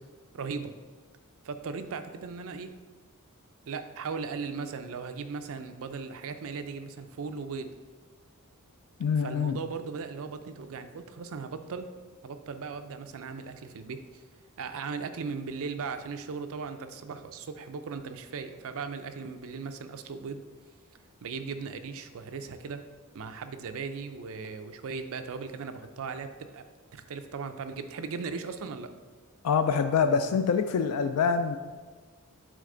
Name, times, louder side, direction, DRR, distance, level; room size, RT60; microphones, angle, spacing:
voice 1, 0.3-0.7 1.4-2.7 3.7-7.7 9.2-11.9 12.2-14.2 14.6-20.4 21.2-22.8 23.1-26.6 26.9-28.9, right 5 dB, 65° right, 8 dB, 0.5 m, -37 dB
voice 2, 9.0-9.6 29.4-31.6, left 6 dB, 80° left, 8 dB, 0.3 m, -25 dB
8.7 x 3.4 x 3.8 m, 1.4 s
head